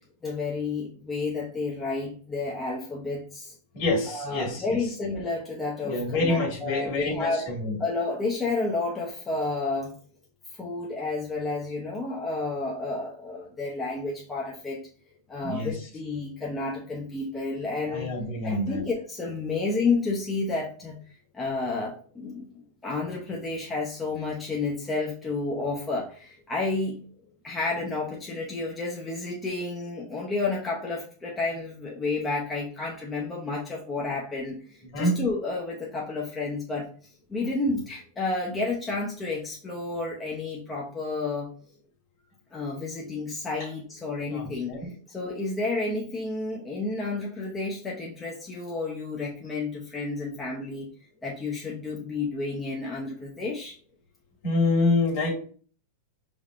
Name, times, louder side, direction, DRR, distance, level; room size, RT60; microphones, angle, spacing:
voice 1, 0.2-3.5 4.1-7.4 7.8-9.9 10.5-14.8 15.3-18.1 18.4-20.9 21.3-22.5 22.8-27.0 27.4-36.9 37.3-41.5 42.5-44.8 45.1-50.9 51.2-53.7, left 3 dB, 10° left, 0.6 m, -31 dB
voice 2, 3.7-4.8 5.8-7.8 15.4-15.8 17.9-18.8 34.9-35.2 43.6-43.7 44.3-44.8 54.4-55.3, left 2 dB, 50° left, 1.9 m, -27 dB
5.4 x 3.4 x 2.4 m
supercardioid pair, 165°, 0 cm